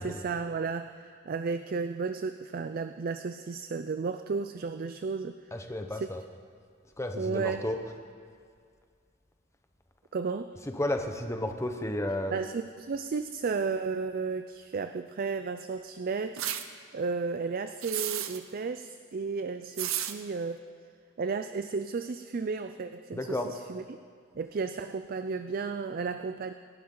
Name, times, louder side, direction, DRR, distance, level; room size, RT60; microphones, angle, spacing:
voice 1, 0.0-5.4 5.9-6.1 7.1-7.6 10.1-10.5 12.3-16.5 16.9-20.6 21.2-24.0 24.4-26.5, right 4 dB, 45° right, 9 dB, 0.4 m, -33 dB
voice 2, 5.5-6.2 7.0-7.8 10.6-12.4 23.1-23.5, left 1 dB, 15° left, 5 dB, 0.9 m, -32 dB
sound 1, 16.4-16.6 17.8-18.4 19.8-20.1, right 11 dB, 80° right, 0.8 m, -32 dB
26.5 x 11.5 x 3.9 m, 2.1 s
head